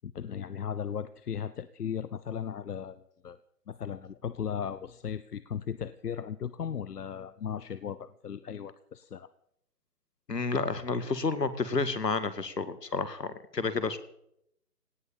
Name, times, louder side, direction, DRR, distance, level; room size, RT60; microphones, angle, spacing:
voice 1, 0.0-3.4 3.7-9.3, left 8 dB, 70° left, 15 dB, 0.9 m, -37 dB
voice 2, 10.3-14.0, left 4 dB, 90° left, 12 dB, 2.2 m, -30 dB
18.0 x 10.0 x 7.2 m, 0.72 s
figure-of-eight pair, 150°, 47 cm